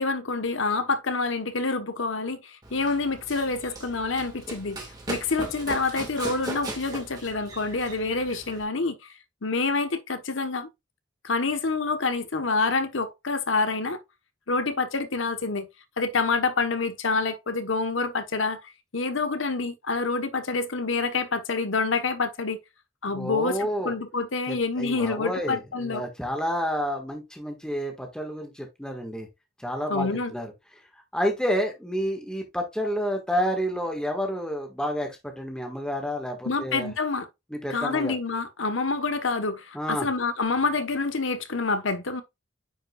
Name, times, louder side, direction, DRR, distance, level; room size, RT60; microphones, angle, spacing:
voice 1, 0.0-4.8 5.1-9.1 9.4-10.7 11.2-14.0 14.5-15.7 16.0-22.6 23.0-26.0 29.9-30.3 36.5-37.3 37.7-42.2, left 3 dB, 80° left, 1.0 m, -27 dB
Run, 2.6-8.6, right 2 dB, 20° right, 2.0 m, -38 dB
voice 2, 23.1-23.9 24.5-29.3 29.6-30.5 31.1-36.9 37.5-38.2 39.7-40.1, equal, 5° left, 1.5 m, -29 dB
9.6 x 5.1 x 2.3 m
head